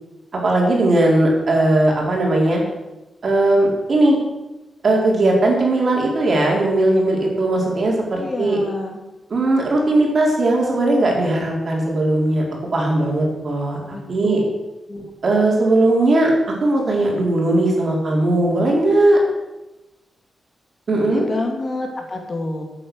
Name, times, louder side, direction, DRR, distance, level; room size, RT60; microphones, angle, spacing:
voice 1, 0.4-2.6 3.2-4.2 4.8-8.6 9.3-12.4 12.7-14.4 15.2-16.3 16.6-19.2 20.9-21.3, right 2 dB, 50° right, -1 dB, 4.3 m, -18 dB
voice 2, 8.2-9.0 13.9-14.5 14.9-15.4 21.0-22.6, left 2 dB, 40° left, 3 dB, 2.6 m, -28 dB
13.5 x 9.0 x 6.4 m, 1.0 s
wide cardioid pair, 115°, 0 cm